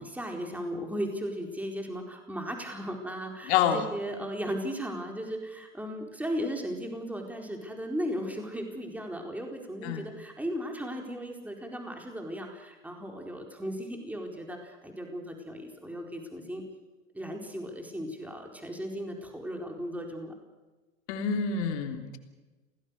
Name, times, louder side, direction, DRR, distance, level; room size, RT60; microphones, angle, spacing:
voice 1, 0.0-16.6 17.1-20.3, equal, 5° right, 2 dB, 4.4 m, -36 dB
voice 2, 3.5-3.8 9.8-10.0 21.1-22.2, left 7 dB, 55° left, 5 dB, 3.4 m, -27 dB
28.5 x 18.5 x 6.7 m, 1.2 s
figure-of-eight pair, 90°, 39 cm